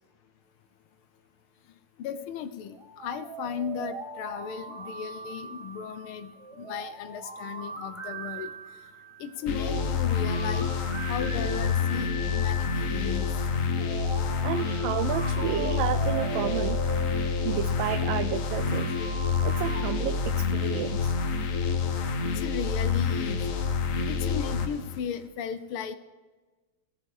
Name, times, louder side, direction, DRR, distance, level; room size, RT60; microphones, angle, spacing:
voice 1, 2.0-6.3 6.6-8.5 9.2-10.7 11.1-13.3 22.2-23.4 24.1-26.0, left 7 dB, 75° left, 12 dB, 1.7 m, -36 dB
sound 1, 2.7-19.9, right 2 dB, 20° right, 1.1 m, -40 dB
sound 2, 9.5-25.0, left 5 dB, 55° left, 0.9 m, -28 dB
voice 2, 14.4-16.8 17.4-18.9 19.4-21.1, right 12 dB, 75° right, 10 dB, 1.2 m, -31 dB
18.0 x 6.6 x 4.8 m, 1.3 s
omnidirectional pair, 2.4 m